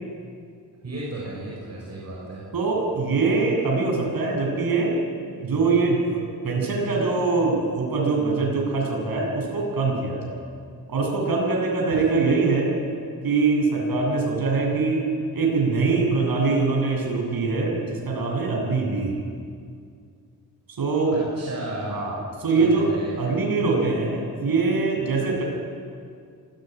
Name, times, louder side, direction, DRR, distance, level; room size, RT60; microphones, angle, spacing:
voice 1, 0.8-2.5 11.9-12.0 21.1-22.0 22.5-23.2, right 2 dB, 45° right, -4 dB, 6.5 m, -34 dB
voice 2, 2.5-4.9 5.4-10.4 10.9-12.7 13.2-15.0 15.3-19.1 20.8-21.2 21.9-22.9 23.2-25.4, right 3 dB, 75° right, -1 dB, 7.9 m, -23 dB
26.5 x 18.5 x 9.4 m, 2.3 s
wide cardioid pair, 145°, 36 cm